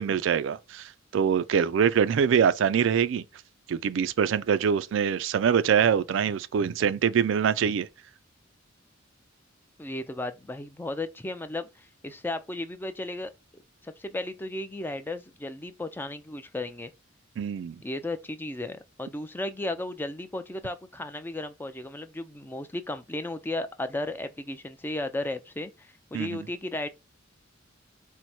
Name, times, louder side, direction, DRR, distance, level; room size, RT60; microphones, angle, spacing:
voice 1, 0.0-3.2 3.7-7.9 17.4-17.8 26.1-26.5, right 7 dB, 65° right, 0.3 m, -24 dB
voice 2, 9.8-16.9 17.8-26.9, left 2 dB, 10° left, 0.4 m, -35 dB
4.5 x 2.1 x 4.1 m
head